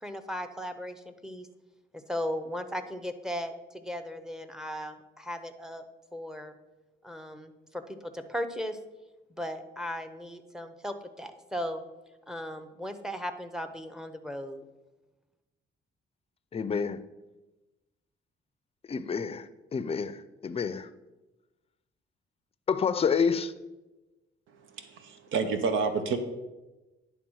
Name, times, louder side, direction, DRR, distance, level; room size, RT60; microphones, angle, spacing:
voice 1, 0.0-1.5 2.1-5.8 6.1-6.5 7.0-8.8 9.4-11.8 12.3-14.6, equal, 5° right, 8 dB, 0.7 m, -37 dB
voice 2, 16.5-17.0 18.9-20.9 22.7-23.5, left 6 dB, 30° left, 13 dB, 0.5 m, -29 dB
voice 3, 24.5-26.2, right 5 dB, 80° right, 8 dB, 0.8 m, -30 dB
10.0 x 3.5 x 6.2 m, 1.1 s
cardioid pair, 90°, 20 cm